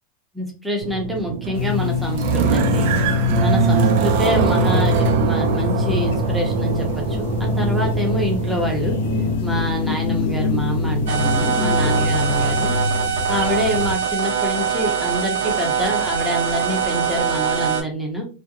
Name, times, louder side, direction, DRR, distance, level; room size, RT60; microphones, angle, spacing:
voice 1, 0.3-2.9 3.4-9.0 9.4-12.7 13.3-18.3, equal, 5° right, 1 dB, 0.6 m, -26 dB
sound 1, 0.8-9.4, right 6 dB, 50° right, 0.3 m, -22 dB
sound 2, 1.5-13.9, left 5 dB, 60° left, 0.6 m, -24 dB
sound 3, 11.1-17.8, right 7 dB, 85° right, 0.8 m, -23 dB
2.4 x 2.1 x 2.7 m, 0.35 s
supercardioid pair, 165°, 0 cm